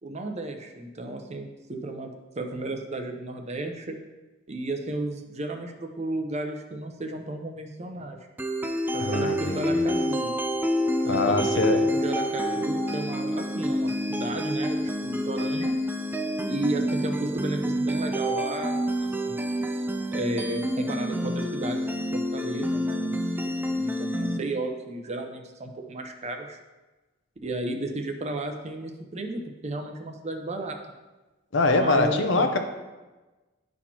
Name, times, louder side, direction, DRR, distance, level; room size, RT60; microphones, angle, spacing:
voice 1, 0.0-4.0 4.5-8.2 8.9-10.3 11.0-15.7 16.5-19.6 20.1-26.6 27.4-30.8 31.7-32.5, right 2 dB, 35° right, 4 dB, 0.7 m, -34 dB
sound 1, 8.4-24.4, equal, 10° right, 0.3 m, -28 dB
voice 2, 9.0-9.9 11.1-11.8 31.5-32.6, left 2 dB, 65° left, 5 dB, 0.7 m, -24 dB
11.5 x 4.2 x 2.9 m, 1.2 s
head